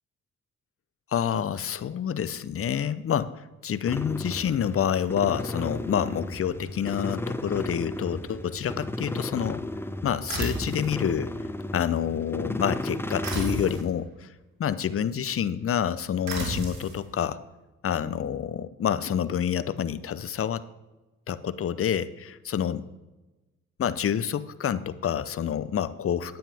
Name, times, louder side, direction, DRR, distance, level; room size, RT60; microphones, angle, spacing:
voice 1, 1.1-9.6 10.0-11.3 11.7-14.3 14.6-17.4 17.8-20.6 21.3-22.8 23.8-26.4, left 9 dB, 45° left, 15 dB, 0.7 m, -28 dB
sound 1, 3.9-13.8, left 1 dB, 5° left, 0.7 m, -34 dB
sound 2, 10.3-10.9 13.2-13.9 16.3-17.0, right 2 dB, 65° right, 3.0 m, -32 dB
10.0 x 9.0 x 3.5 m, 1.1 s
supercardioid pair, 60°, 31 cm